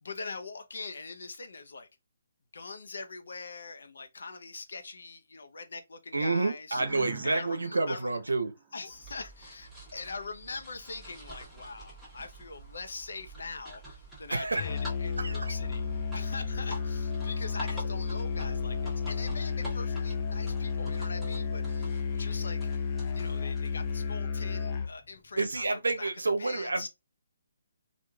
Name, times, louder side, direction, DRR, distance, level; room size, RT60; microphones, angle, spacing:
voice 1, 0.0-1.9 2.5-6.8 7.2-8.2 8.7-22.7 23.1-26.1 26.4-26.9, left 3 dB, 70° left, 0.7 m, -42 dB
voice 2, 6.1-8.5 14.3-14.6 15.2-15.5 25.4-26.9, right 3 dB, 85° right, 0.6 m, -29 dB
sound 1, 6.7-9.4, right 7 dB, 25° right, 0.5 m, -49 dB
sound 2, 8.9-24.2, right 1 dB, ahead, 1.1 m, -47 dB
Musical instrument, 14.6-25.0, left 5 dB, 35° left, 0.5 m, -32 dB
3.0 x 2.4 x 2.3 m
figure-of-eight pair, 145°, 0 cm